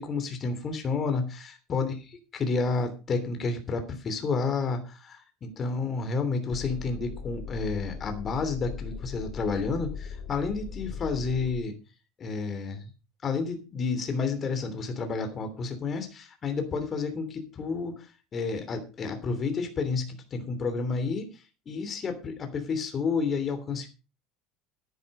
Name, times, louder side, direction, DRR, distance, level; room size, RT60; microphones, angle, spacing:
voice 1, 0.0-11.8 12.2-12.9 13.2-23.9, left 4 dB, 30° left, 6 dB, 3.1 m, -30 dB
sound 1, 6.5-11.6, left 6 dB, 45° left, 2.4 m, -39 dB
11.0 x 10.5 x 5.3 m, 0.31 s
supercardioid pair, 130°, 0 cm